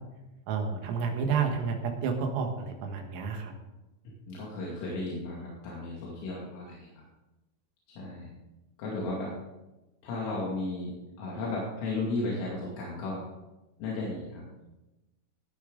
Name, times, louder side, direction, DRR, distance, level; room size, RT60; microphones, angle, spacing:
voice 1, 0.5-3.5, right 5 dB, 80° right, 3 dB, 4.2 m, -30 dB
voice 2, 4.3-6.9 8.0-8.3 8.8-9.3 10.0-10.9 11.2-13.2 13.8-14.4, left 2 dB, 80° left, -5 dB, 5.1 m, -34 dB
18.5 x 9.9 x 4.0 m, 1.0 s
omnidirectional pair, 5.8 m